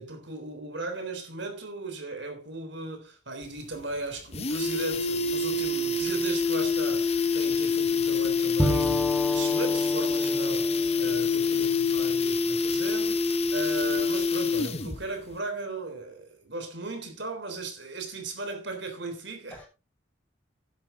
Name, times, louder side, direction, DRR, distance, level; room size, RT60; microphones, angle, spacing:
voice 1, 0.0-10.7 11.0-19.5, right 3 dB, 65° right, 3.6 m, -37 dB
sound 1, 3.4-3.5 3.8-3.9 4.2-15.0 15.3-15.4, left 4 dB, 35° left, 1.0 m, -26 dB
Bowed string instrument, 8.6-12.3, right 1 dB, 5° right, 1.5 m, -32 dB
voice 2, 11.4-12.1 19.5-19.7, equal, 10° left, 6.2 m, -51 dB
11.5 x 11.0 x 3.8 m
head